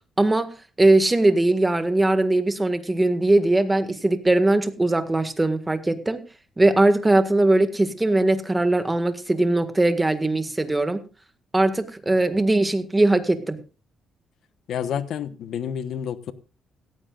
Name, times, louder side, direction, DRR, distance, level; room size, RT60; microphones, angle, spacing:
voice 1, 0.2-0.5 0.8-6.2 6.6-11.0 11.5-13.6, right 2 dB, 15° right, 8 dB, 1.8 m, -20 dB
voice 2, 14.7-16.3, left 8 dB, 70° left, 12 dB, 1.1 m, -29 dB
17.0 x 14.5 x 2.5 m, 0.33 s
cardioid pair, 90°, 0 cm